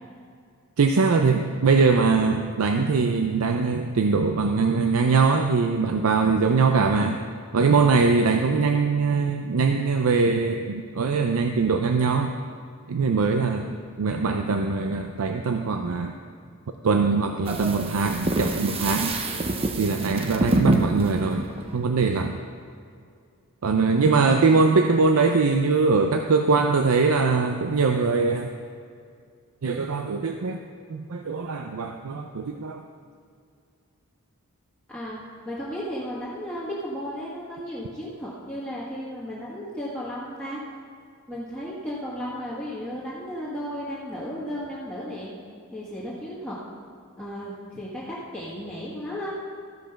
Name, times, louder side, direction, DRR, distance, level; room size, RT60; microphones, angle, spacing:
voice 1, 0.8-7.2 7.5-12.3 12.9-13.7 14.0-16.1 16.8-19.2 19.8-22.4 23.6-28.5 29.6-30.6 30.9-32.8, right 4 dB, 75° right, 5 dB, 0.5 m, -22 dB
voice 2, 13.5-13.9 16.4-16.5 23.9-24.1 34.9-40.6 41.3-45.3 45.7-46.6 47.2-49.4, equal, 5° left, -10 dB, 1.6 m, -34 dB
sound 1, 17.5-22.3, right 1 dB, 25° right, 0.6 m, -27 dB
14.5 x 5.1 x 5.8 m, 2.2 s
head